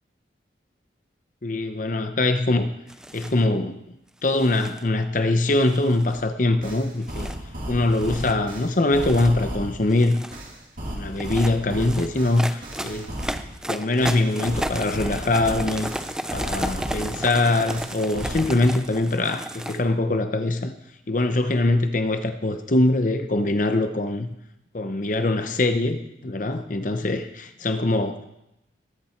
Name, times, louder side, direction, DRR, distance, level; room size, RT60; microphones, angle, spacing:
voice 1, 1.4-2.7 3.1-3.8 4.2-7.3 7.7-10.2 10.8-13.2 13.7-15.9 16.3-20.7 21.1-24.3 24.7-28.2, left 2 dB, 45° left, 8 dB, 0.8 m, -23 dB
sound 1, 2.9-3.4 4.3-4.8 5.5-6.3 7.0-7.4 7.9-8.3 8.9-9.3 9.8-10.4 11.1-19.8, right 1 dB, 5° right, 0.5 m, -34 dB
sound 2, 6.1-6.2 6.6-9.8 10.3-13.5 14.0-17.2 17.7-18.5, equal, 45° right, 2.4 m, -34 dB
20.0 x 8.7 x 4.5 m, 0.85 s
head